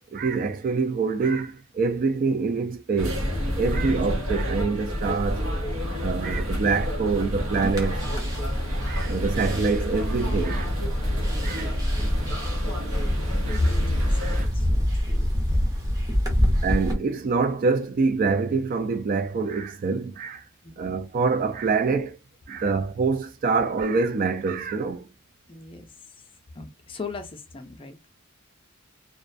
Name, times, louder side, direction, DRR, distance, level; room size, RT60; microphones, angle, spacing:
voice 1, 0.0-3.3 3.6-5.5 6.0-8.0 8.8-10.7 11.4-11.7 13.5-13.6 14.2-14.5 16.6-20.5 20.8-22.2 22.5-25.1, right 4 dB, 40° right, 0.3 m, -25 dB
sound 1, 3.0-14.5, equal, 80° right, 0.8 m, -28 dB
sound 2, 7.5-16.9, equal, 20° right, 0.7 m, -27 dB
voice 2, 13.5-15.7 20.6-20.9 22.5-22.6 25.5-26.3 26.6-28.0, left 2 dB, 25° left, 0.5 m, -34 dB
2.4 x 2.1 x 2.4 m
head